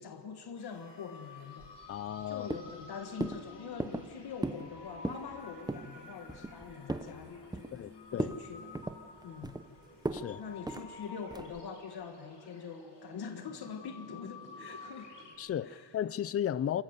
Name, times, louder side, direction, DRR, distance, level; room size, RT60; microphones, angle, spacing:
voice 1, 0.0-1.8 2.3-7.8 8.1-8.7 9.2-9.6 10.4-15.3 15.6-16.0, left 6 dB, 65° left, 1.6 m, -44 dB
sound 1, 0.6-15.4, left 3 dB, 90° left, 5.5 m, -51 dB
sound 2, 1.6-2.2 2.5-2.8 3.2-3.4 3.8-4.1 4.4-4.7 4.9-5.3 5.7-5.9 6.3-7.1 7.5-7.9 8.2-8.4 8.7-9.6 10.0-10.3 10.7-10.9 11.3-11.6, right 2 dB, 10° right, 0.7 m, -36 dB
voice 2, 1.9-2.5 7.7-8.3 10.1-10.4 15.4-16.8, left 10 dB, 35° left, 0.5 m, -34 dB
27.0 x 15.0 x 8.0 m
wide cardioid pair, 140°, 42 cm